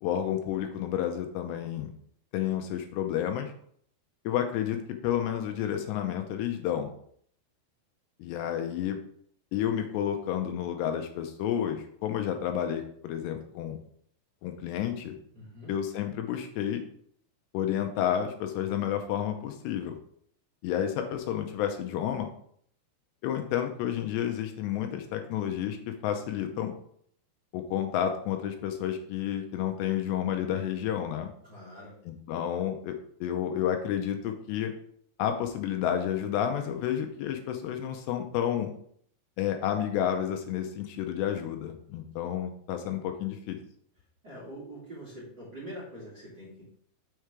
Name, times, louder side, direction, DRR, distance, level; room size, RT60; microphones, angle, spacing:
voice 1, 0.0-1.9 2.3-3.5 4.3-6.9 8.2-9.0 9.5-13.8 14.4-15.2 15.7-16.8 17.5-19.9 20.6-22.3 23.2-26.7 27.5-31.3 32.1-34.7 35.2-38.7 39.4-43.6, left 10 dB, 80° left, 5 dB, 2.8 m, -30 dB
voice 2, 15.3-15.7 31.4-32.0 44.2-46.6, equal, 35° right, -6 dB, 1.8 m, -44 dB
6.6 x 4.9 x 4.6 m, 0.63 s
omnidirectional pair, 5.1 m